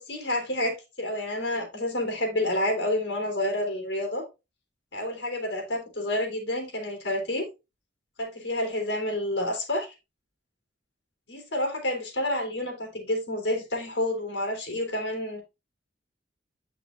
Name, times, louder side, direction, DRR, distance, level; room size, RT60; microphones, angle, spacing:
voice 1, 0.0-4.2 4.9-7.5 8.2-9.9 11.3-15.4, left 1 dB, 75° left, 3.6 m, -29 dB
9.5 x 6.0 x 2.6 m
head